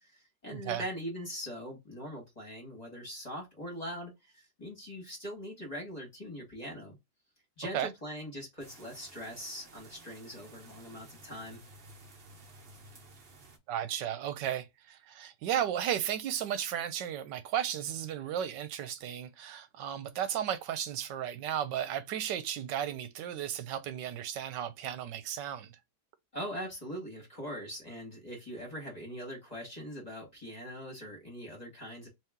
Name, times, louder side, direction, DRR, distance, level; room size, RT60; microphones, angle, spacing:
voice 1, 0.0-7.0 7.6-11.6 26.3-32.1, equal, 25° left, 1.5 m, -42 dB
voice 2, 0.5-0.8 7.7-7.9 13.7-25.7, right 10 dB, 80° right, 1.3 m, -34 dB
sound 1, 8.6-13.6, right 2 dB, 45° right, 0.8 m, -54 dB
3.0 x 2.9 x 3.5 m
omnidirectional pair, 1.9 m